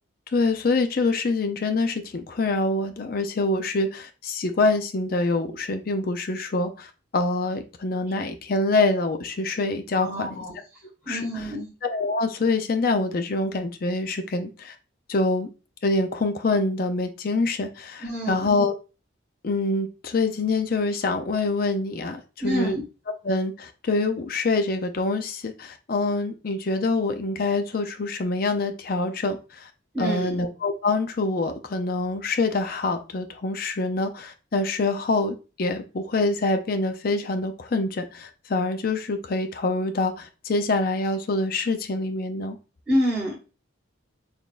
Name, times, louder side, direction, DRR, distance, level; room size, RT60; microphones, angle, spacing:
voice 1, 0.3-10.4 11.1-11.5 11.8-14.8 15.1-15.5 15.8-18.7 19.4-22.8 23.2-29.7 30.0-42.6, left 3 dB, 50° left, 7 dB, 0.5 m, -25 dB
voice 2, 10.0-10.6 11.0-11.7 18.0-18.5 22.4-22.8 29.9-30.4 42.9-43.4, equal, 5° right, -8 dB, 2.0 m, -27 dB
4.1 x 3.4 x 2.4 m, 0.32 s
head